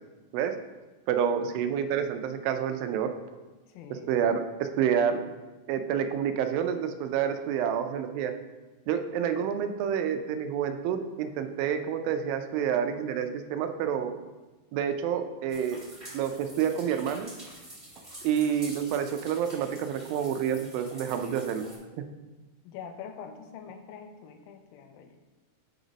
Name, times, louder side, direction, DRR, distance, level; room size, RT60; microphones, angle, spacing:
voice 1, 1.1-3.1 4.1-5.3 5.7-8.3 8.9-14.2 14.7-15.8 16.1-17.3 18.2-21.7, right 8 dB, 90° right, 8 dB, 2.3 m, -28 dB
voice 2, 3.7-4.1 22.6-25.2, left 7 dB, 85° left, 7 dB, 2.4 m, -44 dB
sound 1, 15.5-21.8, right 1 dB, 15° right, 1.0 m, -47 dB
6.8 x 4.0 x 5.0 m, 1.2 s
omnidirectional pair, 4.0 m